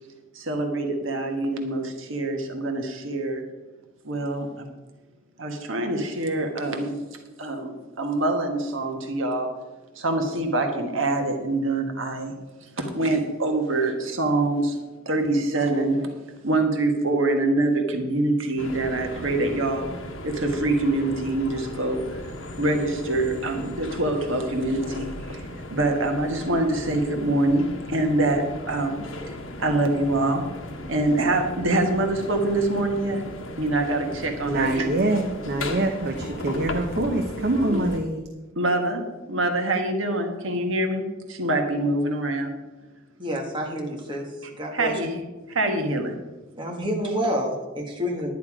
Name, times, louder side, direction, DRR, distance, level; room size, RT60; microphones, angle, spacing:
voice 1, 0.3-3.4 4.0-4.6 5.4-7.0 7.4-9.5 9.9-12.4 12.8-14.8 15.0-16.1 16.4-19.9 20.2-22.2 22.6-25.4 25.7-29.0 29.3-30.4 30.9-33.2 33.6-34.9 37.6-37.8 38.5-42.5 44.7-45.2 45.5-46.2, right 2 dB, 70° right, 4 dB, 1.5 m, -25 dB
sound 1, 18.6-38.0, left 1 dB, 75° left, 1.3 m, -37 dB
voice 2, 34.4-38.3, right 2 dB, 50° right, 5 dB, 0.8 m, -25 dB
voice 3, 43.2-44.3 44.6-44.9 46.6-48.3, equal, 25° right, 0 dB, 1.7 m, -28 dB
11.0 x 9.5 x 4.9 m, 1.2 s
head